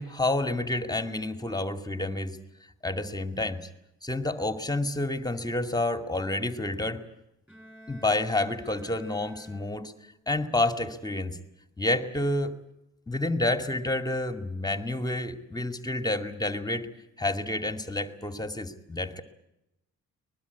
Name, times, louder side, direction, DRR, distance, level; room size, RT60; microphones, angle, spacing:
voice 1, 0.0-2.4 2.8-3.7 4.0-7.0 7.9-9.9 10.3-11.4 11.8-12.5 13.1-16.9 17.2-19.2, left 2 dB, 15° left, 7 dB, 2.4 m, -29 dB
Bowed string instrument, 7.5-10.2, right 1 dB, 5° right, 7.8 m, -50 dB
23.5 x 21.0 x 8.4 m, 0.88 s
cardioid pair, 90°, 30 cm